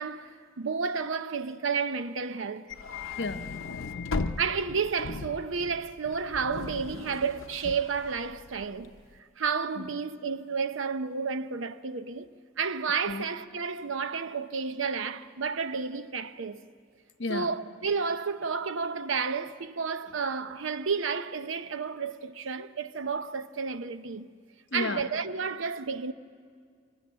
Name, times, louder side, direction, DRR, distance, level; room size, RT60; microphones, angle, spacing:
voice 1, 0.0-2.7 4.4-8.9 9.4-12.3 12.6-16.6 17.3-24.3 24.7-26.1, right 5 dB, 75° right, 0.7 m, -31 dB
sound 1, 2.7-9.0, left 3 dB, 75° left, 0.6 m, -38 dB
voice 2, 2.9-4.4 9.8-9.9 13.1-13.2 17.2-17.5 24.7-25.0, left 3 dB, 60° left, 1.0 m, -34 dB
23.5 x 15.5 x 8.6 m
head